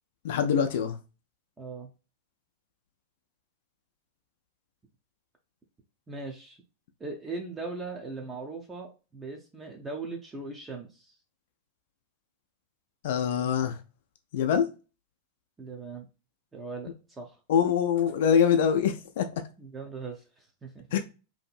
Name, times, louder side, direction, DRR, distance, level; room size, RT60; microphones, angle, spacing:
voice 1, 0.2-1.0 13.0-13.8 14.3-14.7 17.5-19.4 20.9-21.0, left 7 dB, 55° left, 0.4 m, -24 dB
voice 2, 1.6-1.9 6.1-6.6 7.0-11.2 15.6-16.1 16.5-17.4 19.6-21.0, right 3 dB, 15° right, 0.5 m, -39 dB
2.6 x 2.6 x 2.4 m
figure-of-eight pair, 90°, 0 cm